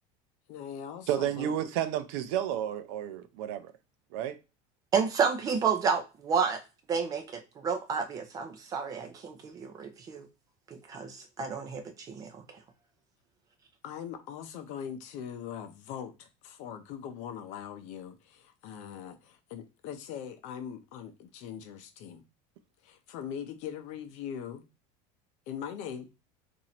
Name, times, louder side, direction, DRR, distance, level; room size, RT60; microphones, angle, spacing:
voice 1, 0.5-1.5 13.8-22.2 22.8-24.6 25.5-26.1, left 8 dB, 50° left, 0.7 m, -41 dB
voice 2, 1.1-3.7 4.1-4.4, right 10 dB, 65° right, 0.5 m, -31 dB
voice 3, 4.9-6.6 6.9-10.3 10.7-12.4, right 6 dB, 25° right, 0.6 m, -30 dB
3.0 x 2.6 x 4.2 m
cardioid pair, 175°, 16 cm